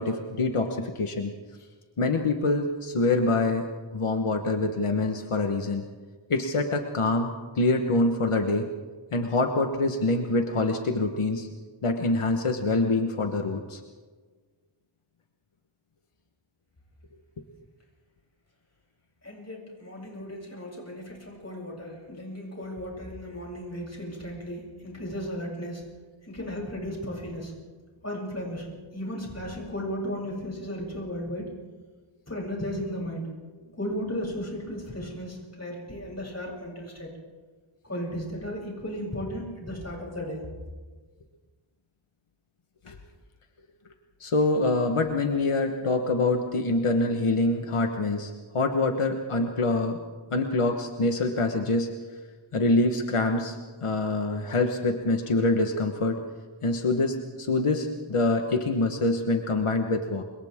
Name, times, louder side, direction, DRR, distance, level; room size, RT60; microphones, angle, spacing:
voice 1, 0.0-1.3 2.0-3.7 3.9-5.8 6.3-8.7 9.1-11.5 11.8-13.8 42.8-43.0 44.2-50.0 50.3-51.9 52.5-56.2 56.6-60.2, left 2 dB, 90° left, 4 dB, 1.4 m, -25 dB
voice 2, 19.2-25.8 26.2-27.5 28.0-31.5 32.3-33.3 33.7-37.1 37.8-40.4, equal, 30° left, -3 dB, 7.9 m, -35 dB
30.0 x 26.0 x 3.7 m, 1.4 s
wide cardioid pair, 65°, 50 cm